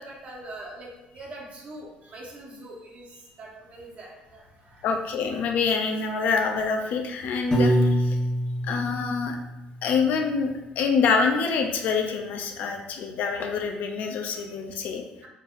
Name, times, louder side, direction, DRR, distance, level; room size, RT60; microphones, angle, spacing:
voice 1, 0.0-4.9 15.2-15.3, right 1 dB, 45° right, -1 dB, 1.1 m, -43 dB
voice 2, 4.8-8.2 8.6-9.4 9.8-15.0, left 5 dB, 65° left, 3 dB, 0.6 m, -26 dB
Piano, 7.5-9.7, right 1 dB, 25° left, 1.2 m, -24 dB
4.4 x 3.3 x 2.6 m, 0.98 s
cardioid pair, 105°, 3 cm